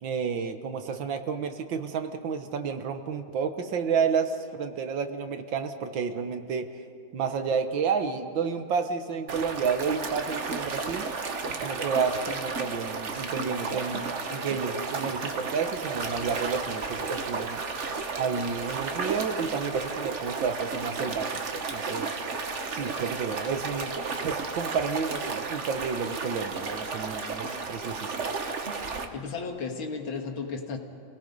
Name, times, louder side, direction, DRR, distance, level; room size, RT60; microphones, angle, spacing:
voice 1, 0.0-6.7 7.1-11.1 11.6-17.6 18.2-22.1 22.7-23.9 24.2-28.1, right 6 dB, 70° right, 7 dB, 1.8 m, -30 dB
sound 1, 9.3-29.1, right 4 dB, 40° right, 1.3 m, -33 dB
voice 2, 29.1-30.8, left 4 dB, 80° left, 3 dB, 2.6 m, -34 dB
29.0 x 18.5 x 5.4 m, 2.5 s
omnidirectional pair, 2.2 m